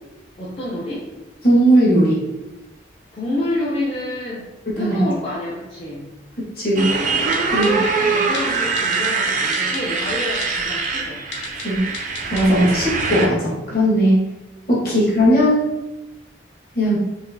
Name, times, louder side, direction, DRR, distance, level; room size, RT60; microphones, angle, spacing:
voice 1, 0.4-1.1 3.1-4.5 4.8-6.1 7.5-11.2 12.7-12.9 14.8-15.1, left 1 dB, 30° left, -8 dB, 0.5 m, -28 dB
voice 2, 1.4-2.2 4.7-5.0 6.6-6.9 7.5-7.8 11.6-11.8 12.3-14.2 14.7-15.7 16.7-17.0, equal, 50° left, -6 dB, 1.4 m, -17 dB
Motorcycle, 6.8-13.3, right 4 dB, 45° right, 0.4 m, -23 dB
Typing, 7.3-7.7 8.3-8.4 8.8-9.1 9.5-9.8 10.4-10.5 11.3-11.6 11.9-12.4 12.8-12.9, left 3 dB, 75° left, 0.7 m, -31 dB
4.0 x 2.4 x 2.6 m, 1.0 s
head